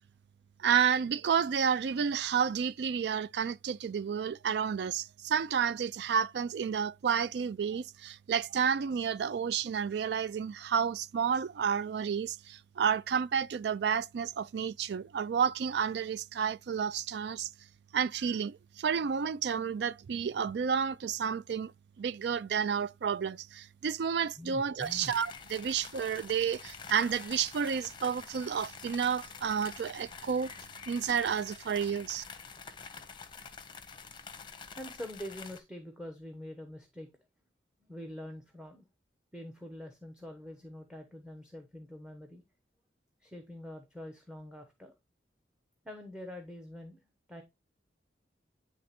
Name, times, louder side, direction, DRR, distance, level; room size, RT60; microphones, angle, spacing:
voice 1, 0.6-17.5 17.9-21.7 22.0-30.5 30.9-32.2, right 7 dB, 65° right, 0.4 m, -31 dB
voice 2, 24.4-25.1 34.8-37.1 37.8-38.8 39.3-42.4 43.2-44.9 45.8-47.4, left 1 dB, 5° right, 0.9 m, -45 dB
sound 1, 24.8-35.6, left 5 dB, 25° left, 0.7 m, -47 dB
9.6 x 3.3 x 4.3 m
head